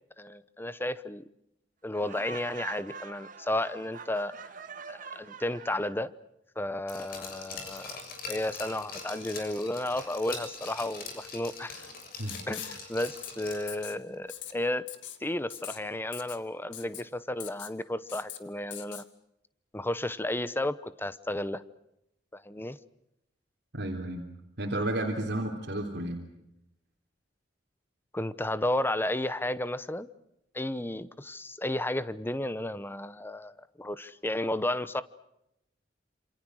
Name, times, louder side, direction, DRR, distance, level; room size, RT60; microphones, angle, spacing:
voice 1, 0.2-1.2 1.8-4.3 4.9-6.1 6.6-8.0 8.3-11.9 12.5-14.8 15.2-19.1 19.7-21.6 22.3-22.8 28.1-30.1 30.5-35.0, left 1 dB, 10° left, 15 dB, 0.9 m, -33 dB
Laughter, 1.9-6.0, right 6 dB, 45° right, 1.7 m, -44 dB
Glass, 6.9-13.8 14.1-14.2, left 4 dB, 55° left, 6.8 m, -42 dB
Writing, 12.3-12.8 13.0-13.3 13.7-14.0 14.3-14.5 14.9-15.2 15.5-15.8 16.1-16.4 16.7-17.0 17.4-17.7 18.1-18.4 18.7-19.0, left 11 dB, 75° left, 2.2 m, -41 dB
voice 2, 23.7-24.2 24.6-26.2, right 1 dB, 65° right, 1 dB, 3.4 m, -32 dB
27.5 x 27.5 x 6.4 m, 0.83 s
head